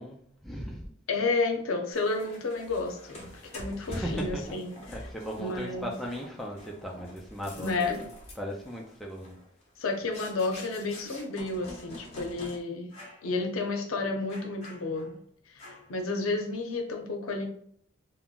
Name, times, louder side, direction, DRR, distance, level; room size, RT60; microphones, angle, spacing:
voice 1, 0.0-0.9 3.9-4.4 4.9-7.7 8.0-8.1 8.4-9.4, equal, ahead, -2 dB, 0.3 m, -37 dB
voice 2, 1.1-4.7 5.4-5.9 7.6-8.0 9.8-12.9 13.2-15.1 15.5-17.5, left 3 dB, 90° left, 3 dB, 0.6 m, -31 dB
sound 1, 1.9-12.6 12.9-13.3 13.6-13.8 14.3-15.2 15.6-16.0, left 1 dB, 30° left, 0.7 m, -47 dB
3.6 x 2.0 x 2.3 m, 0.63 s
head